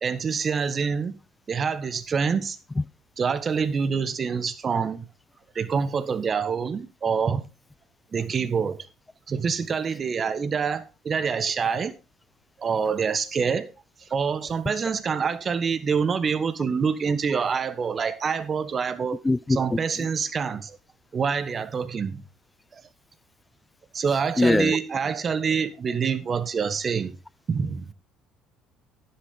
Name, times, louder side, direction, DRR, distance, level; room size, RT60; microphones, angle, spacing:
voice 1, 0.0-1.1 1.5-2.6 3.2-5.0 5.5-7.4 8.1-8.9 9.3-12.0 12.6-13.7 14.0-19.2 19.5-20.8 21.1-22.2 22.7-22.8 23.9-27.2 27.5-27.9, right 6 dB, 40° right, 1.3 m, -26 dB
voice 2, 19.2-19.6 24.4-24.8, left 2 dB, 15° left, 0.4 m, -21 dB
11.5 x 10.0 x 3.7 m
hypercardioid pair, 60°, 0 cm